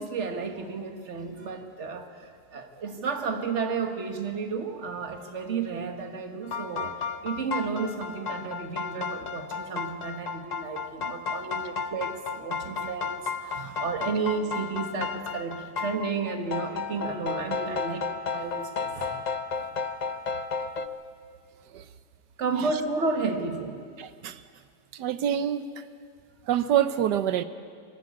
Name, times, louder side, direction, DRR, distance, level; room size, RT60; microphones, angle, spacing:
voice 1, 0.0-19.3 20.3-20.4 22.4-23.8, right 4 dB, 45° right, 5 dB, 1.8 m, -32 dB
sound 1, 6.4-20.9, left 5 dB, 65° left, 0.4 m, -33 dB
voice 2, 24.0-24.4 24.9-25.8 26.5-27.4, right 10 dB, 80° right, 12 dB, 1.4 m, -27 dB
24.5 x 14.0 x 8.6 m, 2.1 s
omnidirectional pair, 1.8 m